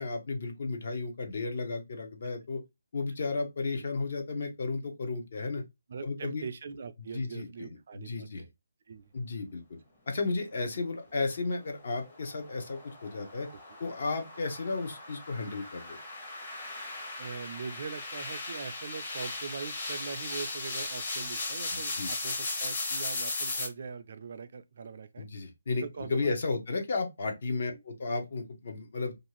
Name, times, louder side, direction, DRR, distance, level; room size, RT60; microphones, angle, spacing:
voice 1, 0.0-2.6 2.9-5.6 6.0-6.4 7.1-8.4 9.1-9.6 10.1-13.5 13.8-16.0 21.7-22.1 25.2-29.1, left 3 dB, 55° left, 0.7 m, -33 dB
voice 2, 5.9-8.5 8.9-9.1 13.5-13.6 17.2-25.3 25.8-26.3 27.7-27.8, right 5 dB, 50° right, 0.3 m, -42 dB
sound 1, 11.6-23.7, left 2 dB, 35° left, 0.9 m, -37 dB
2.5 x 2.3 x 3.0 m
hypercardioid pair, 165°, 0 cm